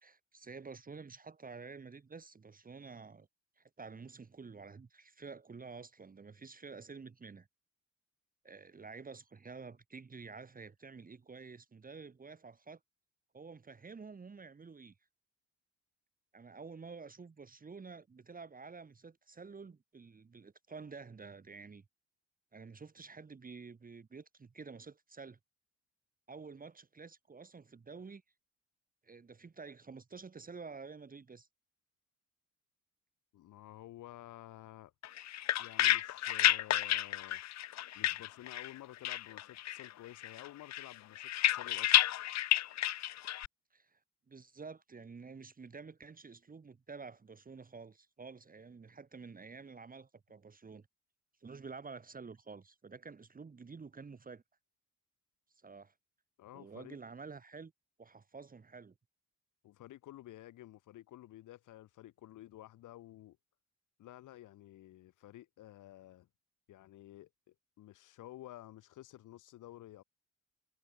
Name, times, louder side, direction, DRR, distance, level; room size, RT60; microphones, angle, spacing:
voice 1, 0.0-3.3 3.6-7.5 8.4-12.8 13.3-14.9 16.3-21.8 22.5-25.4 26.3-28.2 29.0-31.5 43.7-44.0 44.3-50.9 51.4-54.4 55.5-55.9 56.5-57.7 58.0-58.9, right 4 dB, 30° right, 1.8 m, -50 dB
voice 2, 33.3-34.9 35.6-37.4 38.0-41.9 56.4-57.0 59.6-63.4 64.0-66.3 66.7-70.0, left 14 dB, 85° left, 3.4 m, -52 dB
sound 1, 35.0-38.8 39.0-39.9 40.2-43.5, left 13 dB, 60° left, 0.7 m, -31 dB
cardioid pair, 90°, 30 cm